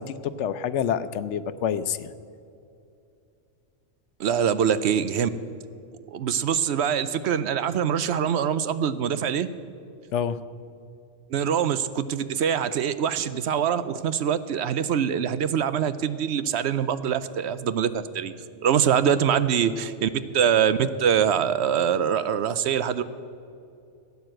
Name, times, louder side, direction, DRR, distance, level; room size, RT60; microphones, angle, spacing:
voice 1, 0.0-2.1 10.1-10.4, left 8 dB, 75° left, 14 dB, 0.9 m, -27 dB
voice 2, 4.2-5.3 6.1-9.5 11.3-18.3 18.6-23.0, right 8 dB, 70° right, 13 dB, 0.8 m, -24 dB
16.5 x 9.4 x 7.7 m, 2.6 s
omnidirectional pair, 1.2 m